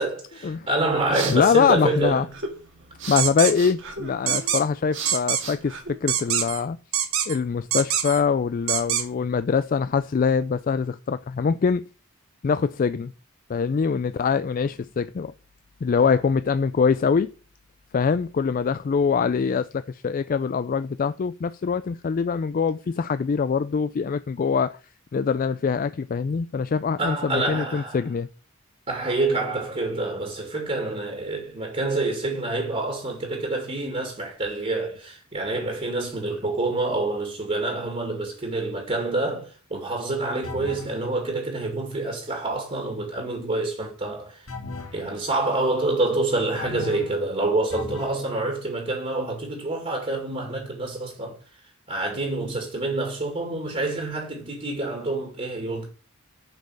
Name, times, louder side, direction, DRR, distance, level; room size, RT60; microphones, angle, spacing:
voice 1, 0.0-2.3 27.0-28.0 28.9-44.5 44.9-51.4 51.9-55.9, right 2 dB, 35° right, 2.2 m, -27 dB
sound 1, 0.6-6.5, right 3 dB, 60° right, 1.9 m, -36 dB
voice 2, 1.3-2.3 3.1-6.8 7.3-11.8 12.4-13.1 13.5-15.3 15.8-17.3 17.9-24.8 25.1-28.3, left 5 dB, 40° left, 0.3 m, -23 dB
sound 2, 3.2-3.5 4.3-4.6 5.0-5.4 6.1-6.6 6.9-7.4 7.7-8.2 8.7-9.0, right 10 dB, 75° right, 1.4 m, -24 dB
sound 3, 40.4-41.0 44.5-45.0 46.5-47.2 47.7-48.2, left 3 dB, 65° left, 2.2 m, -36 dB
7.6 x 5.5 x 6.2 m
head